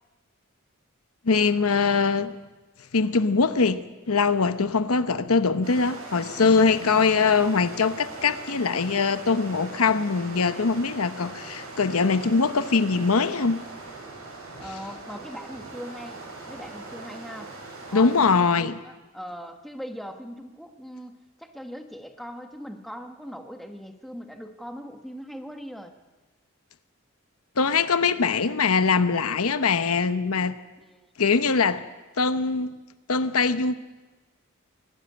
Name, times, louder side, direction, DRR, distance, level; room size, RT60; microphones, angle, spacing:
voice 1, 1.2-2.4 2.9-13.6 17.9-18.8 27.6-30.6 31.2-31.8 32.2-32.8 33.1-33.7, left 4 dB, 80° left, 12 dB, 0.9 m, -22 dB
sound 1, 5.6-18.4, right 3 dB, 80° right, 7.3 m, -41 dB
voice 2, 6.9-7.3 14.6-16.2 16.5-17.5 17.9-25.9 30.8-31.0, equal, ahead, 5 dB, 1.3 m, -40 dB
23.0 x 13.0 x 9.8 m, 1.2 s
head